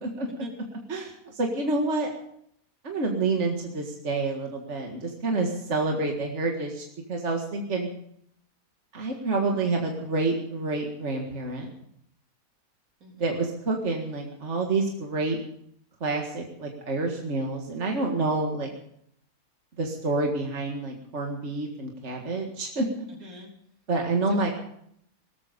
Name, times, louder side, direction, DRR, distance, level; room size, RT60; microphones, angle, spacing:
voice 1, 0.9-2.1 2.8-7.9 8.9-11.7 13.2-15.4 16.0-18.7 19.8-22.9 23.9-24.5, right 3 dB, 50° right, 1 dB, 2.1 m, -28 dB
voice 2, 13.0-13.4 23.1-23.5 24.3-24.5, equal, 75° right, 1 dB, 3.9 m, -45 dB
18.5 x 13.5 x 5.3 m, 0.70 s
omnidirectional pair, 1.5 m